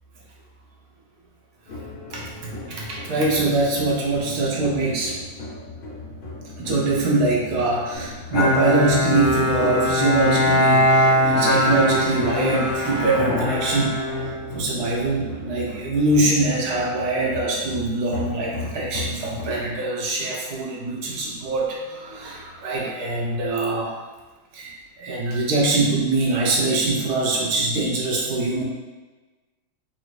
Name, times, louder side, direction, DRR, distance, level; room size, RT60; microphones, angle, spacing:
sound 1, 1.7-19.7, left 2 dB, 80° left, 0.4 m, -36 dB
voice 1, 2.1-5.2 6.6-14.0 14.5-23.9 24.5-28.6, right 2 dB, 65° right, -3 dB, 1.1 m, -23 dB
Bowed string instrument, 8.3-15.0, left 1 dB, 60° left, 0.8 m, -21 dB
4.1 x 2.6 x 3.1 m, 1.2 s
omnidirectional pair, 2.1 m